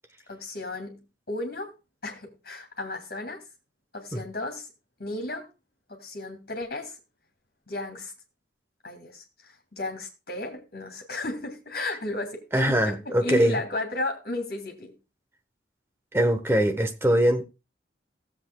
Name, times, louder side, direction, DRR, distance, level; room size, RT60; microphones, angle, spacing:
voice 1, 0.3-1.7 2.0-3.4 3.9-4.7 5.0-5.5 5.9-6.9 7.7-8.1 8.8-14.9, left 2 dB, 55° left, 2.4 m, -34 dB
voice 2, 12.5-13.6 16.1-17.4, equal, 15° right, 0.9 m, -22 dB
17.5 x 7.5 x 2.2 m
head